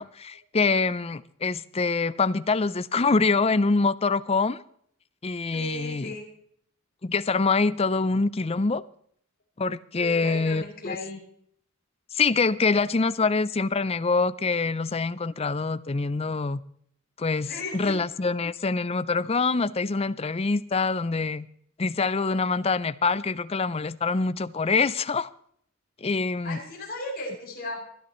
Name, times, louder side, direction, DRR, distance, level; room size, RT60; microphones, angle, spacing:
voice 1, 0.0-4.6 5.2-6.2 7.0-8.8 9.6-11.0 12.1-16.6 17.2-21.5 21.8-25.3 26.0-26.6, left 4 dB, 25° left, 0.5 m, -25 dB
voice 2, 5.5-6.3 10.0-11.2 17.5-18.0 26.4-27.8, left 2 dB, 45° left, 7.5 m, -36 dB
29.5 x 10.5 x 3.1 m
head